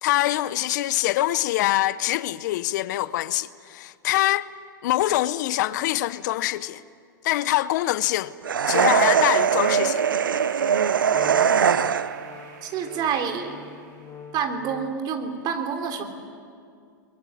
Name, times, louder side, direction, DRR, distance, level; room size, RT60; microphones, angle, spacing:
voice 1, 0.0-4.5 4.8-6.8 7.2-8.3 8.7-10.0, left 15 dB, 60° left, 0.8 m, -24 dB
sound 1, 8.4-12.3, right 7 dB, 90° right, 0.7 m, -21 dB
sound 2, 8.8-14.3, right 5 dB, 60° right, 5.2 m, -46 dB
Wind instrument woodwind instrument, 11.1-15.2, left 7 dB, 25° left, 2.1 m, -44 dB
voice 2, 12.6-13.6 14.3-16.0, right 6 dB, 40° right, 3.5 m, -28 dB
23.5 x 22.0 x 9.8 m
hypercardioid pair, 110°, 11 cm